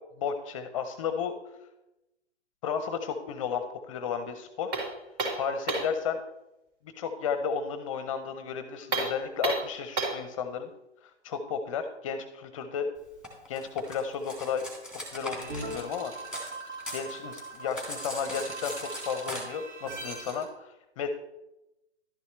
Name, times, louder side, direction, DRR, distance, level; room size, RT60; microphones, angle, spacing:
voice 1, 0.2-1.3 2.6-4.7 5.3-6.2 7.0-10.7 11.2-12.9 13.5-14.7 15.1-16.1 16.9-21.1, left 6 dB, 30° left, 9 dB, 0.6 m, -33 dB
sound 1, 4.7-6.0 8.8-10.3, right 3 dB, 30° right, 3.0 m, -31 dB
Cutlery silverware, 13.2-16.5 16.8-19.4, left 1 dB, 5° right, 1.8 m, -40 dB
sound 2, 15.4-20.4, right 2 dB, 85° right, 3.7 m, -40 dB
11.5 x 9.5 x 3.1 m, 0.91 s
hypercardioid pair, 135°, 34 cm